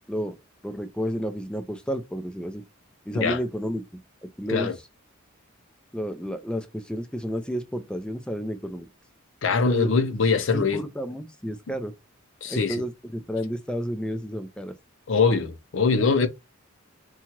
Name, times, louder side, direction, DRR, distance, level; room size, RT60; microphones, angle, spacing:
voice 1, 0.6-2.6 3.1-3.8 4.4-4.7 5.9-8.9 9.7-9.9 10.5-11.9 12.5-14.7, equal, 5° left, 0.3 m, -31 dB
voice 2, 9.4-10.8 12.4-12.8 15.1-16.3, left 4 dB, 60° left, 0.6 m, -22 dB
2.8 x 2.3 x 2.9 m
head